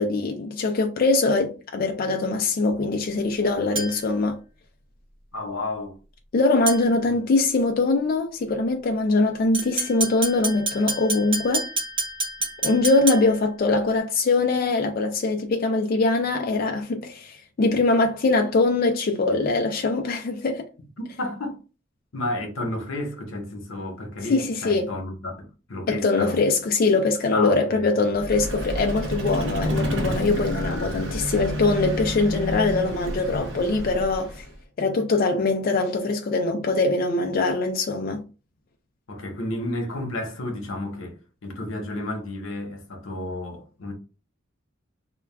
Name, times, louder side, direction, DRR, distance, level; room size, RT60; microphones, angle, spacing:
voice 1, 0.0-4.4 6.3-11.7 12.6-20.7 24.3-24.9 25.9-34.4 34.8-38.2, left 3 dB, 45° left, 0.3 m, -22 dB
sound 1, 3.8-4.2 6.7-7.1 9.5-13.5, right 3 dB, 25° right, 0.9 m, -29 dB
voice 2, 5.3-6.0 21.2-21.6 22.1-26.4 27.3-27.9 39.1-43.9, left 2 dB, 85° left, 0.8 m, -31 dB
Vehicle, 28.1-34.6, equal, 60° right, 0.6 m, -29 dB
2.2 x 2.2 x 3.3 m
head